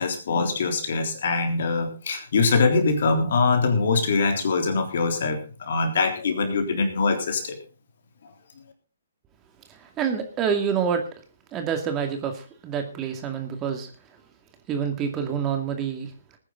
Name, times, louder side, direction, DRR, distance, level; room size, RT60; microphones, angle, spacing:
voice 1, 0.0-7.6, left 4 dB, 55° left, 5 dB, 3.6 m, -23 dB
voice 2, 9.7-11.0 11.5-13.9 14.7-16.1, right 7 dB, 20° right, 5 dB, 2.3 m, -27 dB
20.0 x 10.0 x 3.9 m, 0.36 s
figure-of-eight pair, 130°, 0 cm